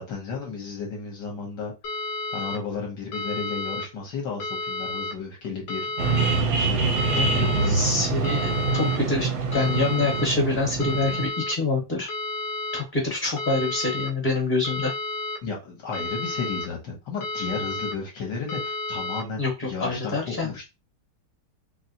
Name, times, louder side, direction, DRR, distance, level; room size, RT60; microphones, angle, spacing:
voice 1, 0.0-1.7 2.3-5.9 6.6-8.0 15.4-20.7, left 5 dB, 65° left, 1.3 m, -33 dB
sound 1, 1.8-2.6 3.1-3.8 4.4-5.1 5.7-6.4 7.0-7.7 8.2-9.0 9.5-10.3 10.8-11.5 12.1-12.8 13.4-14.1 14.6-15.4 15.9-16.7 17.2-17.9 18.5-19.2, left 2 dB, 85° left, 0.6 m, -31 dB
sound 2, 6.0-11.3, right 4 dB, 70° right, 1.0 m, -25 dB
voice 2, 7.1-12.1 12.7-14.9 19.4-20.5, left 3 dB, 30° left, 1.0 m, -26 dB
4.0 x 2.0 x 2.6 m
omnidirectional pair, 2.2 m